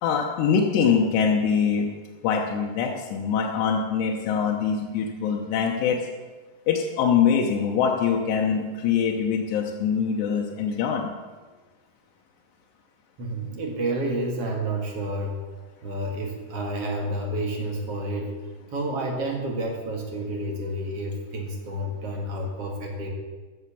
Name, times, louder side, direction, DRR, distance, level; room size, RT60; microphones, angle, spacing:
voice 1, 0.0-1.9 2.2-6.1 6.7-11.1, left 6 dB, 85° left, 0 dB, 3.1 m, -23 dB
voice 2, 13.2-15.4 15.8-18.3 18.7-23.1, right 1 dB, 50° right, 1 dB, 2.1 m, -30 dB
14.5 x 7.7 x 7.0 m, 1.3 s
omnidirectional pair, 4.8 m